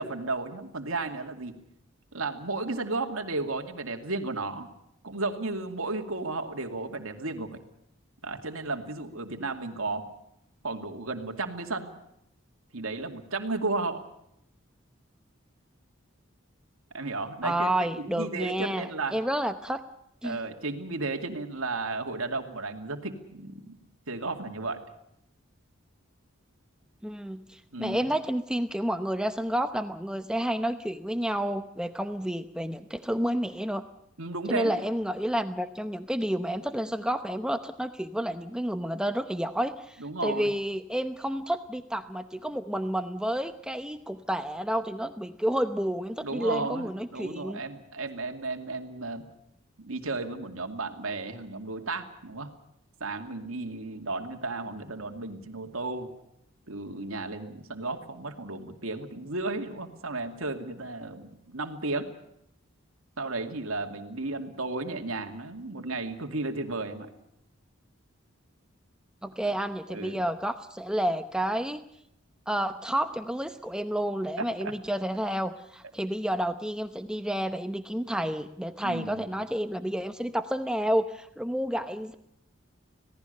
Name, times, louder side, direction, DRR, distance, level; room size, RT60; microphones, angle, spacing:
voice 1, 0.0-1.6 2.1-4.7 5.0-7.6 8.2-10.1 10.6-11.9 12.7-14.0 16.9-17.7 18.0-19.2 20.2-23.8 24.1-24.8 27.7-28.0 34.2-34.8 40.0-40.5 46.2-49.3 49.8-52.5 53.0-56.1 56.7-62.1 63.2-67.1 69.9-70.2 74.4-74.7 78.8-79.2, right 3 dB, 85° right, 4 dB, 2.5 m, -34 dB
voice 2, 17.4-19.8 20.2-20.4 27.0-33.8 34.5-47.6 69.2-71.8 72.5-82.1, right 1 dB, 5° right, 8 dB, 0.8 m, -30 dB
26.5 x 18.0 x 6.7 m, 0.78 s
head